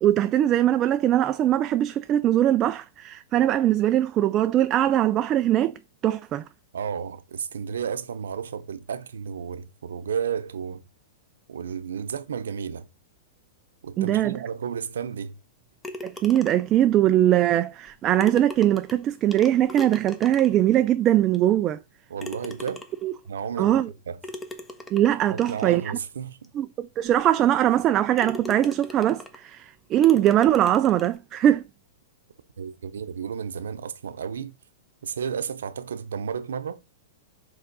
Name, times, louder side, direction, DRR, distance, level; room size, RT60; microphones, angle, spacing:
voice 1, 0.0-6.4 14.0-14.4 16.0-21.8 23.0-23.1 23.6-23.9 24.9-26.0 26.5-31.7, right 12 dB, 35° right, 0.4 m, -21 dB
voice 2, 6.7-10.8 11.5-12.9 13.8-15.3 22.1-22.9 23.2-23.8 24.1-24.2 25.3-26.5 32.6-34.5 35.0-36.8, right 7 dB, 80° right, 0.8 m, -32 dB
sound 1, 15.8-16.8 17.8-17.9 18.2-20.7 21.3-21.4 22.2-23.1 24.2-25.8 26.4-26.5 27.1-27.2 27.7-27.9 28.2-29.5 30.0-31.2, left 1 dB, 15° left, 1.1 m, -40 dB
5.3 x 3.7 x 5.4 m
hypercardioid pair, 115°, 0 cm